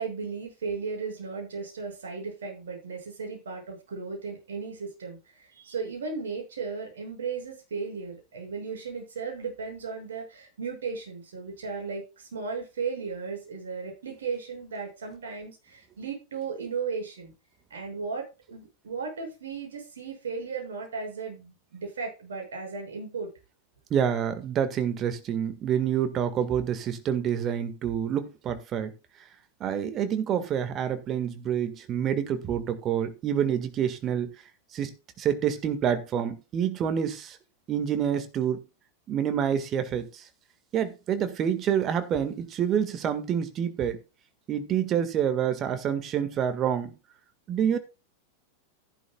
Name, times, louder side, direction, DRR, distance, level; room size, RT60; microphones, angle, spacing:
voice 1, 0.0-17.3 17.7-23.3, right 5 dB, 65° right, 6.4 m, -35 dB
voice 2, 23.9-28.9 29.6-34.3 34.7-34.9 35.2-37.4 37.7-38.6 39.1-40.2 40.7-44.0 44.5-46.9 47.5-47.8, right 9 dB, 30° right, 1.7 m, -27 dB
13.5 x 11.5 x 2.3 m
figure-of-eight pair, 90°, 0 cm